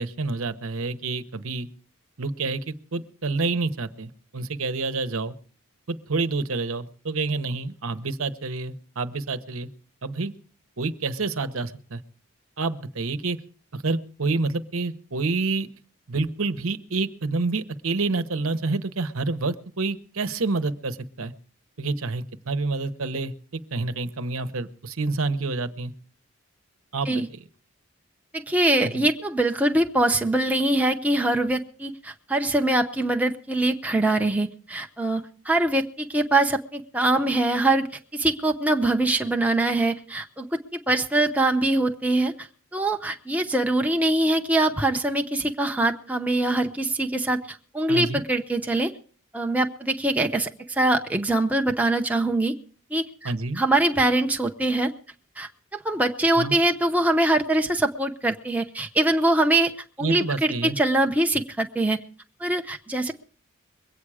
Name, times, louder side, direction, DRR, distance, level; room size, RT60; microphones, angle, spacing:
voice 1, 0.0-1.7 2.2-5.3 5.9-9.7 10.0-10.3 10.8-12.0 12.6-13.4 13.7-15.7 16.1-21.3 21.8-25.9 26.9-27.4 28.8-29.0 47.9-48.2 53.2-53.6 56.4-56.5 60.0-60.8, right 3 dB, 75° right, 10 dB, 1.0 m, -28 dB
voice 2, 28.3-37.9 38.1-48.9 49.3-52.5 52.9-54.9 55.4-55.5 55.8-59.7 60.0-62.0 62.4-63.1, right 2 dB, 5° right, 3 dB, 0.7 m, -23 dB
22.5 x 8.8 x 4.9 m, 0.43 s
head